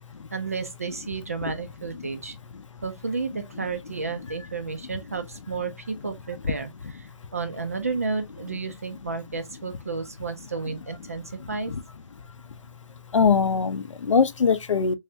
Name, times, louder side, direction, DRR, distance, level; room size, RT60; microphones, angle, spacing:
voice 1, 0.3-2.4 2.8-11.7, right 4 dB, 25° right, 0.4 m, -32 dB
voice 2, 13.1-15.0, left 5 dB, 60° left, 0.6 m, -21 dB
3.5 x 3.2 x 2.6 m
hypercardioid pair, 165°, 18 cm